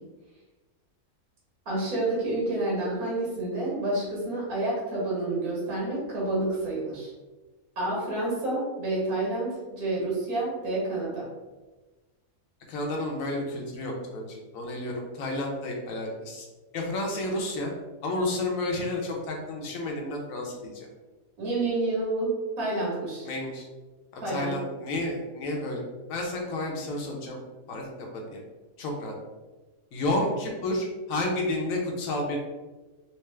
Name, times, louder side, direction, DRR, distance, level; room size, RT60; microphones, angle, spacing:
voice 1, 1.7-7.1 7.8-11.3 21.4-23.3 24.2-24.5, right 2 dB, 85° right, -5 dB, 1.7 m, -29 dB
voice 2, 12.7-16.5 16.7-17.7 18.0-20.9 23.2-23.7 24.1-25.8 26.1-27.4 27.7-28.4 28.8-29.1 29.9-32.4, left 1 dB, 70° left, 0 dB, 1.2 m, -31 dB
4.4 x 2.0 x 3.2 m, 1.2 s
omnidirectional pair, 1.5 m